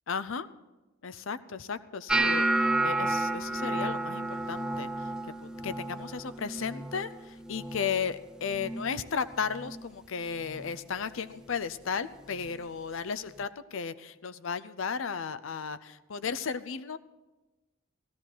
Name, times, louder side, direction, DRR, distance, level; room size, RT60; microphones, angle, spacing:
voice 1, 0.1-0.5 1.0-4.9 5.3-17.0, left 6 dB, 70° left, 14 dB, 0.6 m, -35 dB
sound 1, 2.1-8.2 8.5-9.0 9.3-9.9 10.5-10.7 12.5-12.6, right 2 dB, 5° right, 0.4 m, -31 dB
16.5 x 13.5 x 4.6 m, 1.1 s
head